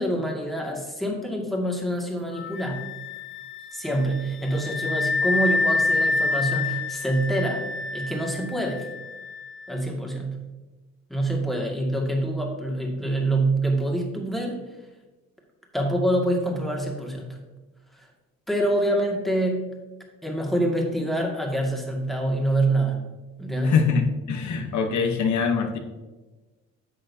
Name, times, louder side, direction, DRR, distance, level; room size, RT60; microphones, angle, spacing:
voice 1, 0.0-2.8 3.7-7.6 7.9-8.9 9.7-10.4 11.1-14.6 15.7-17.4 17.9-18.1 18.5-19.7 20.2-23.0 23.4-23.8, right 1 dB, ahead, 0 dB, 2.1 m, -26 dB
Wind instrument woodwind instrument, 2.3-9.8, left 3 dB, 40° left, 0.8 m, -28 dB
voice 2, 23.6-25.8, left 5 dB, 70° left, 5 dB, 1.1 m, -23 dB
11.0 x 7.6 x 2.8 m, 1.2 s
cardioid pair, 90°, 30 cm